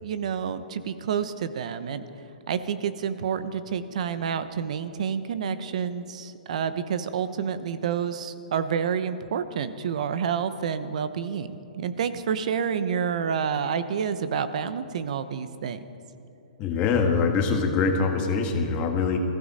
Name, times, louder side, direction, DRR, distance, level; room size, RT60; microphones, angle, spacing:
voice 1, 0.0-2.0 2.5-11.5 11.7-15.8, right 7 dB, 55° right, 12 dB, 0.9 m, -29 dB
voice 2, 16.6-19.2, left 5 dB, 25° left, 4 dB, 1.5 m, -23 dB
21.5 x 15.5 x 4.2 m, 2.8 s
hypercardioid pair, 165°, 4 cm